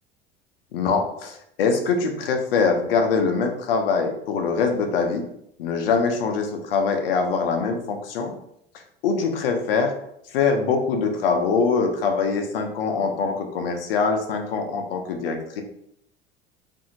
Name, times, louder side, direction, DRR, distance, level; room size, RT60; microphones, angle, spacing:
voice 1, 0.7-5.3 5.6-8.3 9.0-9.9 10.3-15.6, left 5 dB, 70° left, 5 dB, 0.6 m, -23 dB
2.7 x 2.6 x 2.7 m, 0.75 s
figure-of-eight pair, 75°, 30 cm